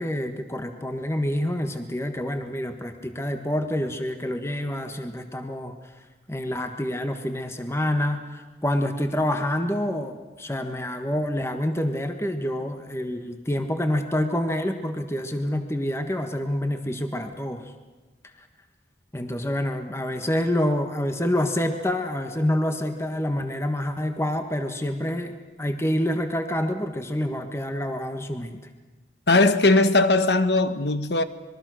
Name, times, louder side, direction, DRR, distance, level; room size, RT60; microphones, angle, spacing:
voice 1, 0.0-5.8 6.3-17.7 19.1-25.3 25.6-28.6, left 1 dB, 15° left, 1.5 m, -27 dB
voice 2, 29.3-31.2, left 2 dB, 70° left, 1.3 m, -19 dB
26.0 x 22.5 x 6.5 m
head